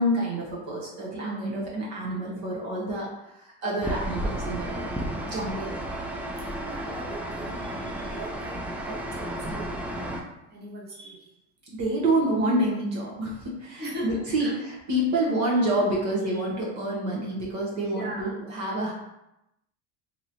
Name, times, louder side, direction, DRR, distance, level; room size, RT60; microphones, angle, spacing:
voice 1, 0.0-3.1 3.6-4.9 5.3-5.8 11.0-11.1 11.8-14.5 14.9-18.9, right 1 dB, 55° right, -5 dB, 1.0 m, -27 dB
sound 1, 3.8-10.2, right 1 dB, 5° right, 0.3 m, -33 dB
voice 2, 6.4-11.2 13.8-14.6 15.1-15.3 17.7-18.4, right 1 dB, 30° right, -4 dB, 1.1 m, -40 dB
3.0 x 2.9 x 2.6 m, 0.88 s
supercardioid pair, 85°, 35 cm